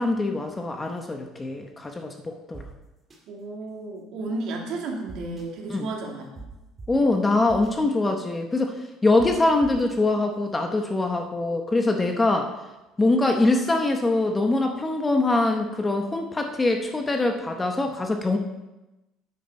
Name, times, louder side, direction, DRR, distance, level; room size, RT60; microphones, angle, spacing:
voice 1, 0.0-2.7 5.7-5.9 6.9-8.8 9.0-12.5 13.0-18.4, left 2 dB, 15° left, 4 dB, 0.8 m, -23 dB
sound 1, 2.5-2.6 3.1-3.2 5.1-5.4 6.4-6.5 6.8-6.9 7.5-7.7 9.2-9.3 9.6-10.0, right 3 dB, 20° right, 2.3 m, -41 dB
voice 2, 3.3-6.4, right 2 dB, 55° right, 0 dB, 2.3 m, -33 dB
9.3 x 8.4 x 5.3 m, 1.0 s
cardioid pair, 155°, 0 cm